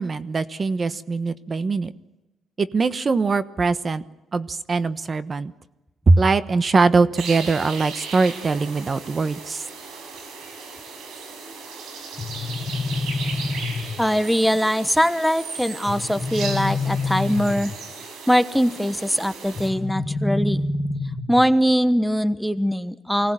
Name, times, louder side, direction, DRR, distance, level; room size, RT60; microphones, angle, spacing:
voice 1, 0.0-1.9 2.6-4.0 4.3-5.5 6.1-9.7, right 3 dB, 35° right, 13 dB, 1.1 m, -21 dB
sound 1, 7.2-19.7, right 5 dB, 85° right, 6.1 m, -37 dB
sound 2, 12.2-14.2 15.9-17.9 19.6-21.6, left 3 dB, 30° left, 1.4 m, -27 dB
voice 2, 14.0-17.7 18.3-20.6 21.3-23.3, equal, ahead, 12 dB, 1.1 m, -21 dB
25.0 x 18.0 x 9.0 m, 1.0 s
cardioid pair, 90°, 0 cm